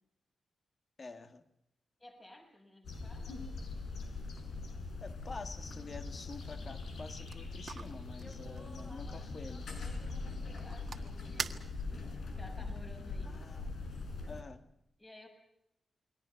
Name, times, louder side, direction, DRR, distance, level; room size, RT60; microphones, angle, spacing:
voice 1, 1.0-1.5 5.0-9.6 13.3-13.7 14.3-14.7, left 3 dB, 40° left, 8 dB, 2.0 m, -48 dB
voice 2, 2.0-3.5 8.2-11.6 12.3-13.4 15.0-15.3, left 1 dB, 25° left, 3 dB, 6.7 m, -55 dB
sound 1, 2.8-14.4, left 3 dB, 75° left, 5.4 m, -42 dB
sound 2, 6.9-12.1, right 5 dB, 55° right, 1.6 m, -46 dB
29.5 x 22.5 x 5.9 m, 0.81 s
wide cardioid pair, 125°, 0 cm